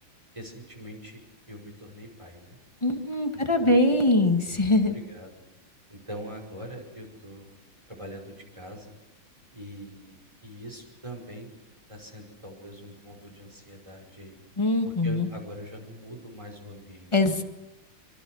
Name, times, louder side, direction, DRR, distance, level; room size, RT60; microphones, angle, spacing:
voice 1, 0.3-2.6 3.3-3.8 4.9-5.3 5.9-7.5 7.8-8.9 9.5-11.5 11.9-14.4 14.8-17.4, equal, 15° right, 1 dB, 5.4 m, -43 dB
voice 2, 2.8-4.9 14.6-15.3 17.1-17.4, left 2 dB, 15° left, 4 dB, 1.6 m, -22 dB
25.5 x 25.0 x 6.3 m, 1.0 s
omnidirectional pair, 2.3 m